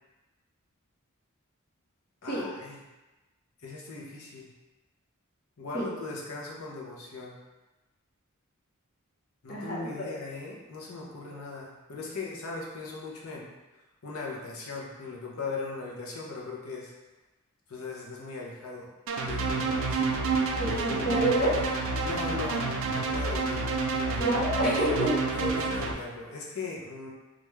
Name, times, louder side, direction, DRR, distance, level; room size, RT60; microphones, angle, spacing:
voice 1, 2.2-2.8 3.6-4.5 5.6-7.4 9.4-13.5 14.0-16.9 17.7-18.9 19.2-20.1 22.0-24.4 25.3-27.1, left 3 dB, 80° left, -3 dB, 0.7 m, -39 dB
voice 2, 9.5-9.8 20.6-21.6 24.2-25.2, right 1 dB, 45° left, -7 dB, 1.0 m, -27 dB
sound 1, 19.1-25.9, right 4 dB, 65° right, 0.4 m, -29 dB
3.4 x 2.5 x 3.1 m, 1.1 s
head